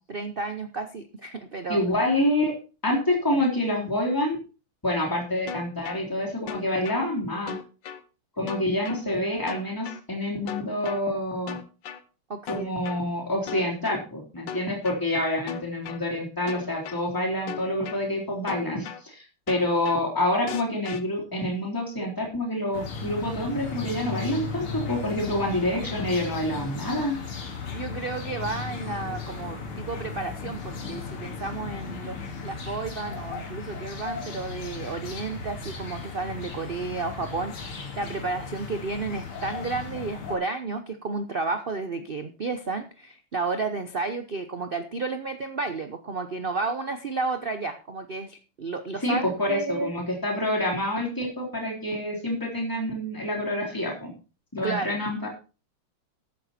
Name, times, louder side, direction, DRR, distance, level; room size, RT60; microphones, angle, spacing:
voice 1, 0.0-1.8 3.3-3.5 12.3-12.7 27.7-32.2 32.4-49.9 54.6-55.0, right 3 dB, 55° right, 8 dB, 0.6 m, -32 dB
voice 2, 1.7-2.5 2.8-4.4 4.8-7.6 8.4-11.6 12.5-27.2 49.0-54.1 54.5-55.3, left 1 dB, 10° left, -2 dB, 3.8 m, -27 dB
sound 1, 5.5-6.0 6.5-7.0 7.5-8.0 8.5-9.0 9.5-10.0 10.5-11.0 11.5-12.0 12.5-13.0 13.5-14.0 14.5-15.0 15.5-16.0 16.5-17.0 17.5-18.0 18.5-19.0 19.5-20.0 20.5-21.0, left 7 dB, 65° left, 1.7 m, -36 dB
sound 2, 22.7-40.4, left 5 dB, 80° left, 3.3 m, -36 dB
14.0 x 9.3 x 4.3 m, 0.34 s
omnidirectional pair, 2.4 m